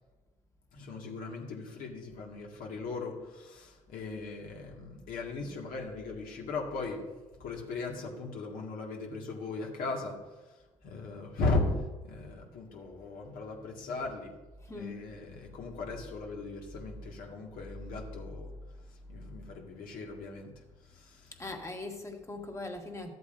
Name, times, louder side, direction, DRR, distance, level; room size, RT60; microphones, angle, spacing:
voice 1, 0.7-7.1 7.4-14.4 14.7-18.5 19.1-21.3, left 3 dB, 65° left, 0 dB, 1.9 m, -37 dB
voice 2, 13.5-13.8 14.6-15.1 17.4-17.5 19.3-19.4 21.4-23.1, left 2 dB, 20° left, 3 dB, 1.6 m, -41 dB
13.0 x 7.9 x 2.6 m, 1.2 s
hypercardioid pair, 60°, 16 cm